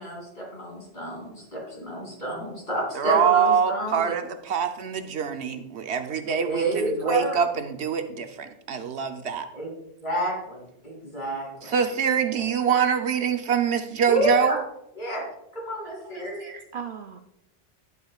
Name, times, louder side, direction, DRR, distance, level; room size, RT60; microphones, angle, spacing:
voice 1, 0.0-4.1 6.4-7.4 9.5-9.7 10.0-11.8 12.4-12.5 14.1-14.6 14.9-15.2 15.5-16.4, right 1 dB, 45° left, -2 dB, 3.3 m, -29 dB
voice 2, 2.9-9.5 11.6-14.6, right 7 dB, 80° right, 6 dB, 1.1 m, -24 dB
voice 3, 16.0-17.2, right 7 dB, 60° right, 7 dB, 0.7 m, -39 dB
11.0 x 8.1 x 2.4 m, 0.81 s
omnidirectional pair, 1.1 m